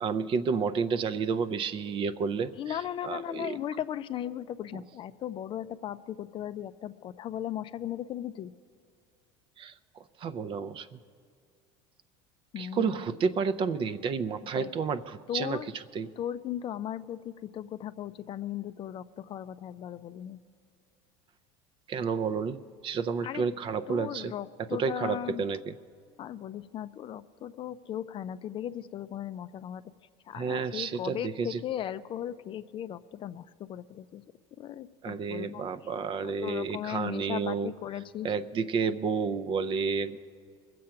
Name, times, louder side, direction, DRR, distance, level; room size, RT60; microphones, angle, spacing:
voice 1, 0.0-2.8 3.0-3.6 9.6-9.7 10.2-11.0 12.6-16.1 21.9-22.6 22.8-24.3 24.7-25.7 30.4-31.6 35.0-37.7 38.2-40.2, right 5 dB, 35° right, 12 dB, 0.5 m, -30 dB
voice 2, 2.5-8.5 12.5-13.0 14.5-14.7 15.3-15.7 16.2-20.4 23.2-23.4 23.9-25.4 26.2-29.8 30.3-34.2 34.6-35.6 36.2-38.3, left 10 dB, 35° left, 13 dB, 0.4 m, -37 dB
21.5 x 7.6 x 5.7 m, 2.1 s
supercardioid pair, 120°, 14 cm